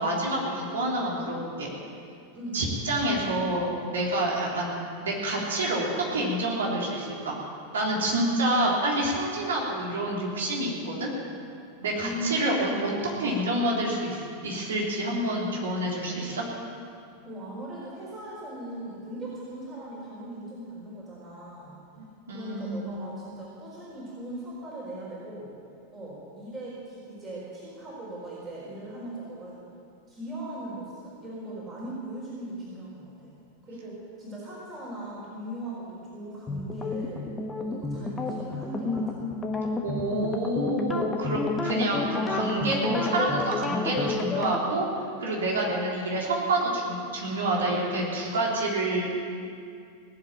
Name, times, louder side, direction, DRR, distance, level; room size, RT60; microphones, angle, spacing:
voice 1, 0.0-1.7 2.5-4.7 5.0-7.4 7.7-11.1 11.8-12.9 13.2-16.4 22.0-22.8 39.8-44.8 45.2-49.1, right 1 dB, 65° right, -3 dB, 3.5 m, -28 dB
voice 2, 12.0-12.8 17.2-21.8 22.3-25.5 25.9-29.6 30.1-33.3 33.6-37.3 37.6-39.2, right 1 dB, 25° right, -6 dB, 4.2 m, -39 dB
sound 1, 36.5-44.6, left 3 dB, 15° left, 1.3 m, -30 dB
18.5 x 8.1 x 8.9 m, 2.4 s
figure-of-eight pair, 90°, 0 cm